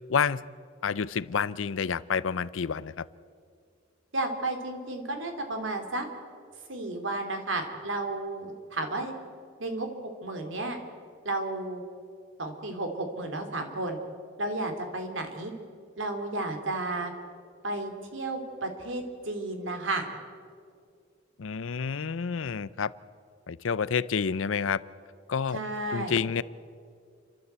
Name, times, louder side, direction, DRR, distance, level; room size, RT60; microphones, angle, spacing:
voice 1, 0.1-0.5 0.8-3.0 21.4-22.9 23.5-24.8 25.3-25.6 25.9-26.4, left 6 dB, 85° left, 18 dB, 0.6 m, -29 dB
voice 2, 4.1-6.1 6.7-9.1 9.6-9.9 10.2-10.8 11.2-11.8 12.4-14.0 14.4-15.5 16.0-17.1 17.6-20.0 25.5-26.2, right 2 dB, 75° right, 5 dB, 3.0 m, -32 dB
29.5 x 12.5 x 8.1 m, 2.2 s
head